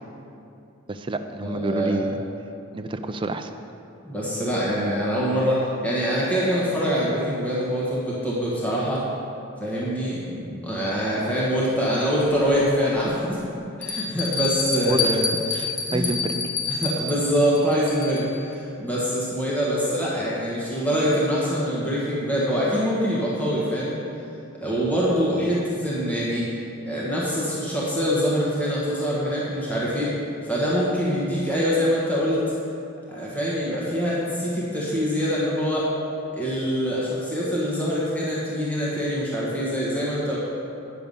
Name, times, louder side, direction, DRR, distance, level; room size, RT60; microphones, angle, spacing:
voice 1, 0.9-2.2 2.7-3.5 14.9-15.2 15.5-16.5, right 2 dB, 25° right, 7 dB, 0.4 m, -29 dB
voice 2, 1.4-2.1 4.0-9.0 9.6-13.4 13.8-15.6 15.9-16.1 16.8-24.0 24.6-26.4 26.9-30.1 30.4-32.4 33.1-35.9 36.3-40.4, equal, 5° left, -7 dB, 1.4 m, -24 dB
Bell, 12.2-12.3 13.0-13.1 13.8-18.4, left 4 dB, 50° left, 1.2 m, -28 dB
9.5 x 6.9 x 5.4 m, 2.6 s
head